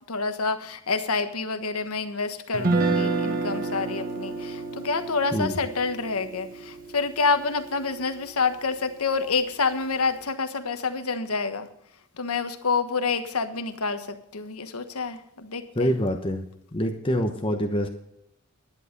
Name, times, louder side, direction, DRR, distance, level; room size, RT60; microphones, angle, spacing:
voice 1, 0.1-11.7 12.2-16.0, left 4 dB, 90° left, 8 dB, 1.3 m, -28 dB
Guitar, 2.5-8.7, right 3 dB, 40° right, 1.5 m, -30 dB
voice 2, 15.8-16.4 16.7-17.9, equal, 25° left, 3 dB, 1.1 m, -25 dB
11.0 x 11.0 x 5.3 m, 0.75 s
head